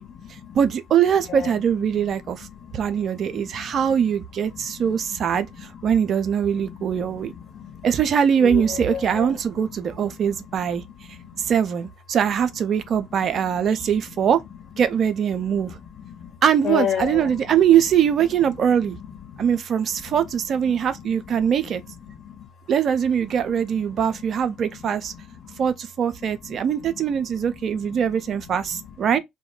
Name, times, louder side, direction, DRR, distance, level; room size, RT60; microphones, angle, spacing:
voice 1, 0.0-0.6 1.3-1.5 2.4-3.0 3.3-3.8 4.5-6.0 6.5-7.9 8.4-9.4 9.6-9.7 10.0-10.7 11.0-11.5 13.2-13.8 15.5-16.3 16.6-17.6 18.5-19.6 19.9-20.1 20.7-22.4 23.4-23.6 23.8-24.0 24.8-25.7 26.3-27.1 27.7-28.2 28.7-28.9, left 9 dB, 50° left, 1.2 m, -36 dB
voice 2, 0.5-2.5 2.7-5.5 5.8-7.3 7.8-10.8 11.4-14.4 14.8-15.8 16.4-19.0 19.4-21.8 22.7-25.1 25.6-29.2, right 8 dB, 50° right, 0.4 m, -22 dB
2.2 x 2.2 x 3.6 m
hypercardioid pair, 55°, 0 cm